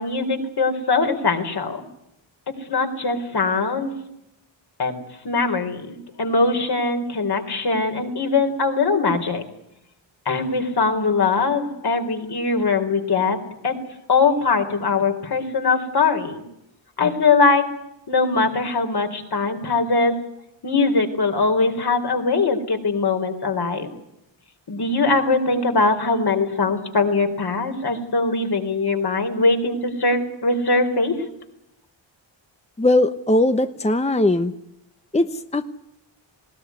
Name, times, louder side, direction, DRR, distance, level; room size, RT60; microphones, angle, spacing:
voice 1, 0.0-1.8 2.7-3.9 4.8-4.9 5.2-9.4 10.3-13.4 13.6-13.7 14.1-16.4 17.0-17.7 18.1-20.2 20.6-23.9 24.7-31.2, left 3 dB, 55° left, 5 dB, 4.2 m, -21 dB
voice 2, 32.8-34.5 35.1-35.6, left 2 dB, 15° left, 10 dB, 1.0 m, -19 dB
20.0 x 19.0 x 9.6 m, 0.82 s
wide cardioid pair, 95°, 46 cm